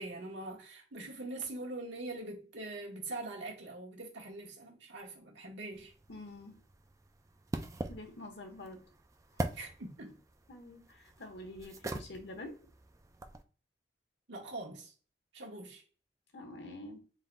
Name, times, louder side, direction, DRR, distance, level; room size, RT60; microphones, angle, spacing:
voice 1, 0.0-5.9 9.5-10.2 14.3-14.9 15.3-15.8, right 2 dB, 90° right, 1.4 m, -43 dB
sound 1, 5.7-13.4, right 2 dB, 20° right, 0.4 m, -43 dB
voice 2, 6.1-6.6 7.9-8.8 9.3-9.5 10.5-12.5 16.3-17.0, left 1 dB, 70° left, 1.1 m, -47 dB
4.0 x 3.8 x 2.3 m
head